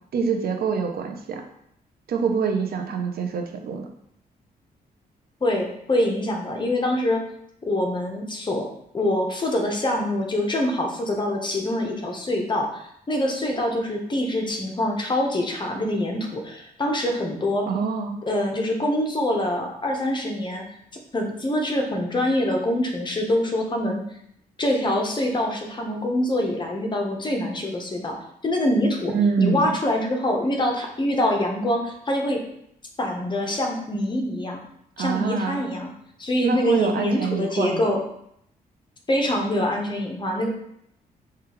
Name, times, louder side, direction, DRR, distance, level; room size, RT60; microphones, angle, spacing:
voice 1, 0.1-1.4 2.1-3.9 17.7-18.2 29.1-29.8 35.0-35.6 36.4-37.9, right 5 dB, 70° right, 4 dB, 0.5 m, -25 dB
voice 2, 5.4-7.2 7.6-8.7 8.9-17.7 18.3-20.6 21.1-24.0 24.6-28.2 28.4-32.4 33.0-34.6 35.0-35.9 36.2-38.0 39.1-40.5, left 1 dB, 30° left, 1 dB, 0.8 m, -25 dB
4.7 x 2.3 x 3.0 m, 0.73 s
cardioid pair, 90°, 16 cm